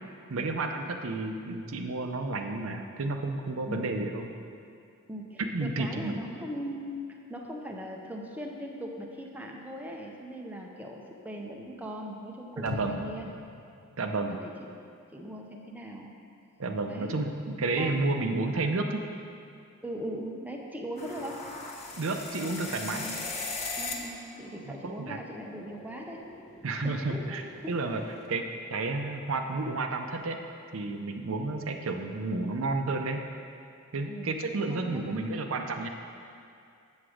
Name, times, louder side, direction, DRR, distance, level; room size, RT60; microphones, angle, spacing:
voice 1, 0.3-4.3 5.4-6.2 12.6-13.0 14.0-14.4 16.6-19.0 21.9-23.1 24.6-25.2 26.6-27.4 27.7-28.0 28.3-28.4 28.7-30.4 30.7-33.2 33.9-35.9, right 3 dB, 65° right, 4 dB, 0.6 m, -31 dB
voice 2, 5.1-13.3 14.2-14.7 15.1-16.1 16.9-17.2 17.8-18.1 19.8-21.4 23.0-23.3 23.8-26.2 26.8-27.4 27.6-28.0 34.1-34.3 34.7-35.1, equal, 10° right, 0 dB, 0.6 m, -40 dB
sound 1, 12.7-14.8 15.2-15.3, left 4 dB, 65° left, 0.4 m, -42 dB
sound 2, 21.0-24.2 24.4-28.3, left 3 dB, 30° left, 0.8 m, -40 dB
7.8 x 7.1 x 4.9 m, 2.5 s
head